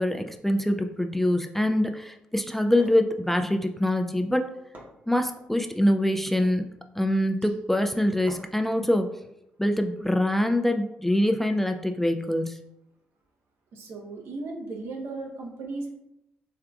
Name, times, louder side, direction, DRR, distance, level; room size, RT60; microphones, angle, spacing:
voice 1, 0.0-4.5 5.1-6.6 7.0-9.1 9.6-12.6, left 1 dB, 5° left, 6 dB, 0.3 m, -24 dB
sound 1, 2.5-3.0 4.3-4.4 4.7-5.5 6.2-6.7 8.3-8.7, right 1 dB, 40° right, 1.1 m, -48 dB
voice 2, 13.7-15.9, right 3 dB, 65° right, 0 dB, 0.8 m, -36 dB
3.6 x 3.3 x 2.3 m, 0.84 s
hypercardioid pair, 40°, 5 cm